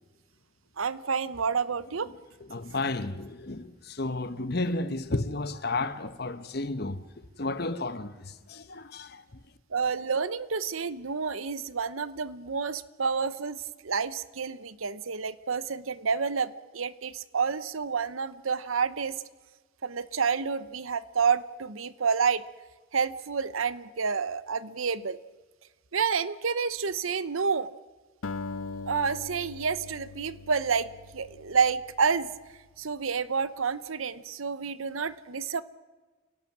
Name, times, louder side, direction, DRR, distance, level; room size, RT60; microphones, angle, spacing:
voice 1, 0.8-2.1 4.8-4.9 9.7-19.2 19.8-22.4 22.9-25.2 25.9-27.7 28.9-32.3 32.8-35.6, right 5 dB, 80° right, 16 dB, 0.9 m, -29 dB
voice 2, 2.5-7.0 7.4-8.1 8.5-9.2, left 2 dB, 50° left, 12 dB, 1.0 m, -32 dB
Acoustic guitar, 28.2-32.7, left 3 dB, 90° left, 0.7 m, -41 dB
29.0 x 18.0 x 6.1 m, 1.3 s
head